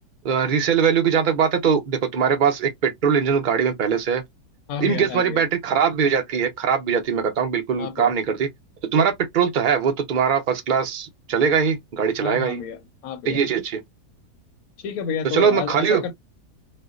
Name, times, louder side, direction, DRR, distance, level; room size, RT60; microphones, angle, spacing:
voice 1, 0.2-4.2 4.8-8.5 8.9-12.6 13.2-13.8 15.3-16.0, right 7 dB, 70° right, 0.4 m, -21 dB
voice 2, 4.7-5.4 7.8-8.1 12.2-13.4 14.8-16.1, left 7 dB, 70° left, 1.0 m, -30 dB
4.3 x 2.2 x 2.4 m
omnidirectional pair, 1.8 m